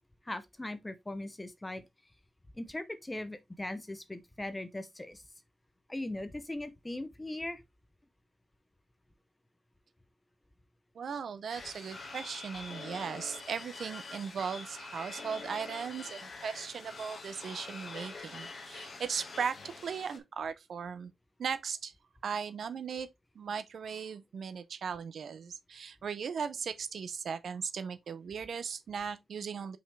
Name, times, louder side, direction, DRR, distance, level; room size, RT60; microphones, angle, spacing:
voice 1, 0.2-1.8 2.5-5.2 5.9-7.6, left 1 dB, 10° left, 0.6 m, -39 dB
voice 2, 11.0-21.1 21.4-21.9 22.2-23.1 23.4-29.8, right 6 dB, 65° right, 0.6 m, -38 dB
sound 1, 11.5-20.2, left 3 dB, 45° left, 1.7 m, -45 dB
5.6 x 5.3 x 3.2 m
wide cardioid pair, 175°, 0 cm